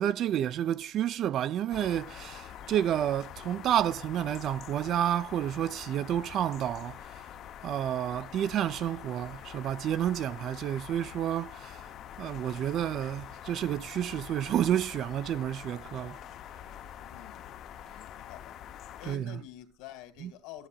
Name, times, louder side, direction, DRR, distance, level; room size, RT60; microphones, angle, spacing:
voice 1, 0.0-7.0 7.6-11.8 12.2-16.2 19.1-19.4 20.2-20.3, right 11 dB, 40° right, 0.4 m, -30 dB
sound 1, 1.7-19.2, left 10 dB, 45° left, 0.6 m, -45 dB
voice 2, 17.0-17.5 17.8-18.6 19.0-20.7, left 13 dB, 75° left, 2.0 m, -48 dB
14.0 x 8.4 x 2.3 m
cardioid pair, 165°, 0 cm